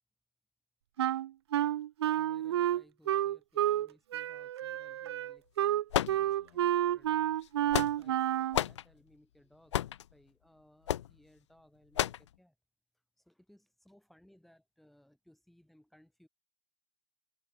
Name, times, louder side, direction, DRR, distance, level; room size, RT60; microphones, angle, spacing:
Wind instrument woodwind instrument, 1.0-3.9 4.1-8.6, right 12 dB, 60° right, 0.6 m, -30 dB
voice 1, 2.1-7.3 7.6-12.6 13.2-16.3, left 1 dB, ahead, 4.2 m, -64 dB
sound 1, 5.9-6.7 7.4-8.2 8.5-8.8 9.7-10.1 10.9-11.1 12.0-12.3, left 11 dB, 70° left, 0.6 m, -31 dB
hypercardioid pair, 170°, 15 cm